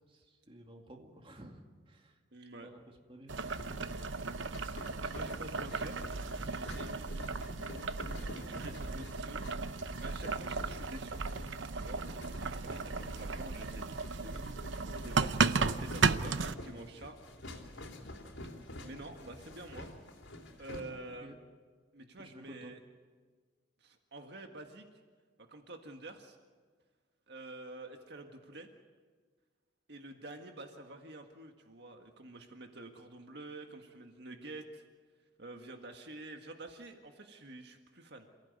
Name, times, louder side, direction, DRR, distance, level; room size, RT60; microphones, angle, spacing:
voice 1, 0.1-2.2 2.6-4.3 21.2-21.3 22.2-22.7, right 1 dB, 30° right, 3 dB, 2.3 m, -54 dB
voice 2, 2.3-2.7 5.1-6.0 6.5-7.3 8.2-11.2 11.7-12.0 12.3-17.2 18.8-19.9 20.6-21.3 21.9-22.8 23.8-24.8 25.4-26.4 27.3-28.7 29.9-34.8 35.4-38.3, right 2 dB, 60° right, 4 dB, 1.8 m, -48 dB
sound 1, 3.3-20.8, left 1 dB, 80° left, 3.6 m, -49 dB
Boiling, 3.3-16.5, right 4 dB, 80° right, 0.8 m, -35 dB
28.0 x 15.5 x 9.6 m, 1.5 s
head